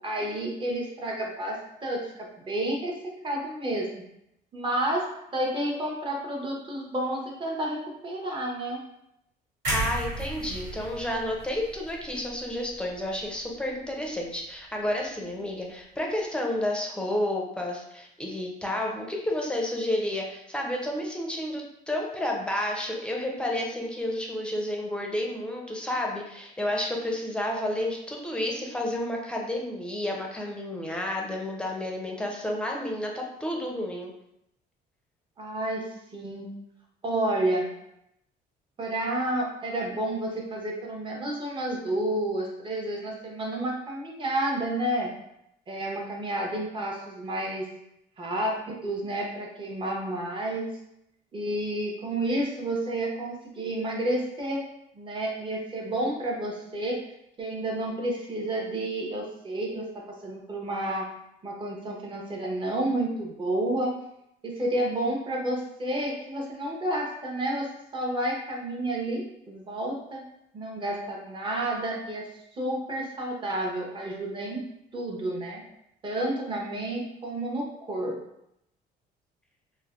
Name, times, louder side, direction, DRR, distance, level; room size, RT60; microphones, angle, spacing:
voice 1, 0.0-3.9 4.5-5.1 5.3-8.8 35.4-35.8 36.1-36.5 37.0-37.7 38.8-45.1 45.7-47.7 48.2-50.7 51.3-54.6 54.9-57.0 57.4-61.1 61.4-63.9 64.4-70.3 70.5-72.3 72.5-74.6 74.9-75.6 76.0-78.2, right 1 dB, 30° right, -1 dB, 0.7 m, -30 dB
sound 1, 9.6-13.7 14.0-14.2, right 2 dB, 85° right, 1.5 m, -35 dB
voice 2, 9.7-34.1, left 1 dB, 5° left, -1 dB, 0.5 m, -31 dB
3.2 x 2.1 x 2.3 m, 0.80 s
cardioid pair, 110°, 17 cm